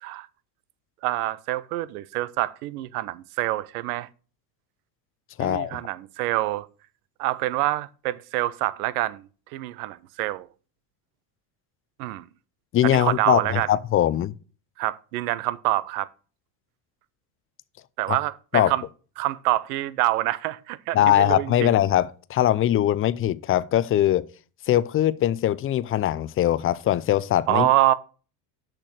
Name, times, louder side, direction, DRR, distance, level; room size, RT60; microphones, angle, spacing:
voice 1, 1.0-4.1 5.4-6.7 7.2-10.5 12.0-12.3 12.8-13.7 14.8-16.1 18.0-18.8 19.2-21.7 27.5-27.9, right 16 dB, 85° right, 0.7 m, -26 dB
voice 2, 5.4-5.8 12.7-14.3 18.1-18.2 18.5-18.7 20.9-24.3 24.7-27.7, left 12 dB, 30° left, 0.4 m, -21 dB
6.6 x 6.1 x 6.3 m
supercardioid pair, 105°, 44 cm